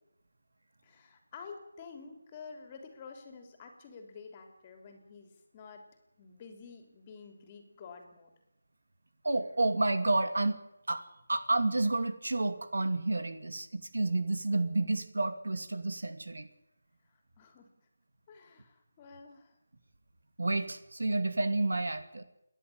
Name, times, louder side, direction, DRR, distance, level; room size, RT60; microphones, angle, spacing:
voice 1, 0.8-5.8 6.2-8.3 17.1-17.7 18.3-19.5, left 5 dB, 25° left, 5 dB, 3.4 m, -50 dB
voice 2, 9.2-10.6 10.9-16.5 20.4-22.2, right 2 dB, 85° right, 9 dB, 2.6 m, -30 dB
28.5 x 11.0 x 8.8 m, 0.86 s
figure-of-eight pair, 170°, 0 cm